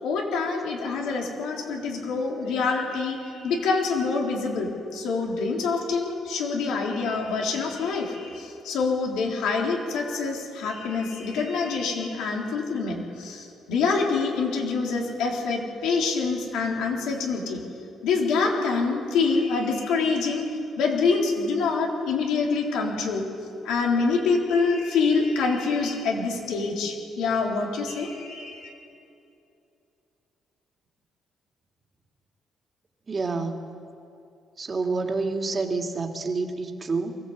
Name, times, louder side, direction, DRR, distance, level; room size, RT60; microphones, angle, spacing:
voice 1, 0.0-17.6 18.0-20.5 20.8-23.2 23.6-28.7, left 4 dB, 90° left, 0 dB, 3.8 m, -26 dB
voice 2, 33.1-33.7 34.6-37.2, right 3 dB, 35° right, 4 dB, 2.3 m, -28 dB
24.0 x 16.5 x 8.2 m, 2.7 s
cardioid pair, 90°, 0 cm